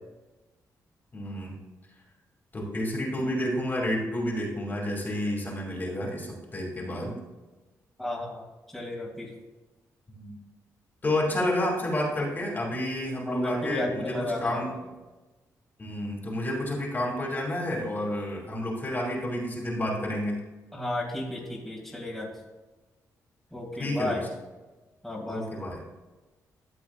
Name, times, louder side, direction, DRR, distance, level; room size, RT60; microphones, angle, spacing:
voice 1, 1.1-1.6 2.5-7.2 10.1-10.4 11.0-14.7 15.8-20.4 23.8-24.3 25.2-25.8, left 1 dB, 30° left, -1 dB, 2.6 m, -30 dB
voice 2, 8.0-9.3 13.3-14.7 20.7-22.3 23.5-24.2 25.0-25.5, left 1 dB, ahead, -5 dB, 2.3 m, -33 dB
13.0 x 7.3 x 2.4 m, 1.2 s
cardioid pair, 105°, 6 cm